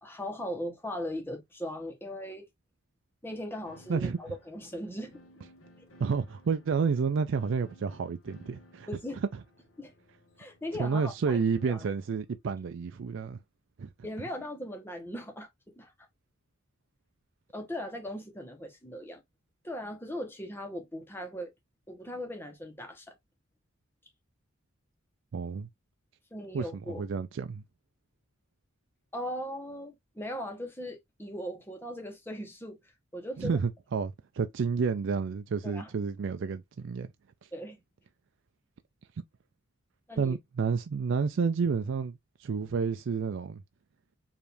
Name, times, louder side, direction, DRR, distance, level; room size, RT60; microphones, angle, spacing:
voice 1, 0.0-2.5 3.2-5.2 5.8-5.9 8.9-9.2 9.8-9.9 10.4-11.4 11.7-11.8 14.0-15.5 15.8-15.9 17.5-19.2 19.6-21.5 21.9-23.2 26.3-27.1 29.1-32.8 33.1-33.6 35.6-35.9 37.5-37.8 40.1-40.4, equal, 10° left, 1.1 m, -38 dB
sound 1, 3.6-12.0, equal, 85° left, 1.2 m, -58 dB
voice 2, 6.0-8.9 10.8-13.4 13.8-13.9 25.3-25.7 26.5-27.6 33.4-37.1 40.2-43.6, right 5 dB, 65° right, 0.4 m, -30 dB
4.9 x 2.7 x 3.4 m
head